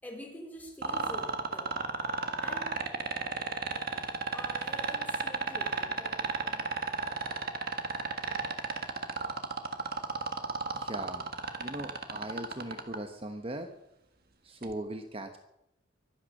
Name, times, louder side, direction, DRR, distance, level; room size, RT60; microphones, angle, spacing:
voice 1, 0.0-1.7 2.4-2.7 4.3-6.8, equal, 10° left, 2 dB, 3.5 m, -46 dB
sound 1, 0.8-13.0 14.6-14.7, right 4 dB, 55° right, 1.6 m, -32 dB
voice 2, 10.7-11.3 11.6-13.7 14.4-15.4, right 1 dB, 30° right, 6 dB, 1.1 m, -39 dB
23.5 x 9.4 x 6.5 m, 0.85 s
head